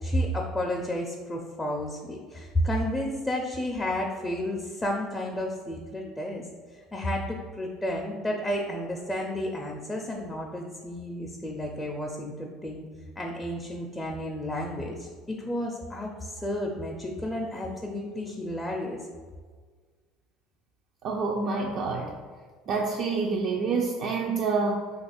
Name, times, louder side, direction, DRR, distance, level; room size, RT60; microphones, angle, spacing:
voice 1, 0.0-6.4 6.9-12.8 13.2-19.0, left 1 dB, 15° left, 0 dB, 0.4 m, -31 dB
voice 2, 21.0-22.2 22.7-24.9, right 4 dB, 55° right, -1 dB, 0.3 m, -27 dB
2.8 x 2.3 x 4.2 m, 1.5 s
supercardioid pair, 90°, 0 cm